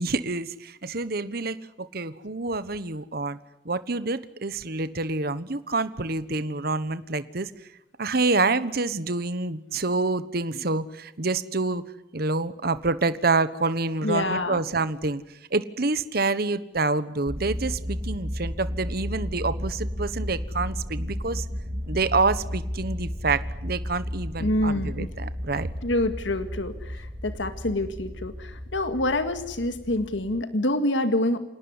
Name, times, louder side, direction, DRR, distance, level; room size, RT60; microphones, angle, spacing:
voice 1, 0.0-3.4 3.6-7.5 8.0-11.8 12.1-15.2 15.5-21.4 21.9-25.7, right 3 dB, 55° right, 14 dB, 1.2 m, -27 dB
voice 2, 14.0-14.6 24.4-25.1 25.8-31.4, left 1 dB, 85° left, 9 dB, 2.0 m, -26 dB
sound 1, 17.3-30.4, equal, 25° right, 2.1 m, -33 dB
27.5 x 18.5 x 9.7 m, 0.91 s
head